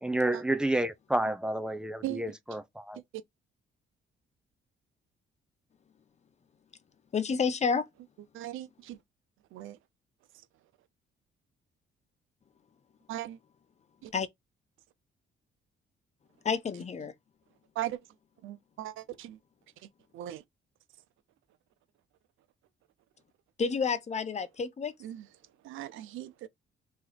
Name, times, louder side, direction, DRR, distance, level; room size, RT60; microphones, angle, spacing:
voice 1, 0.0-3.0, right 1 dB, 5° right, 0.7 m, -30 dB
voice 2, 7.1-7.9 14.1-14.3 16.4-17.1 23.6-24.9, left 5 dB, 35° left, 0.7 m, -29 dB
voice 3, 8.3-9.0 9.5-9.8 13.1-13.4 14.0-14.1 17.7-18.0 18.4-19.4 19.8-20.4 25.0-26.5, right 14 dB, 85° right, 0.6 m, -39 dB
3.2 x 2.9 x 4.0 m
cardioid pair, 90°, 20 cm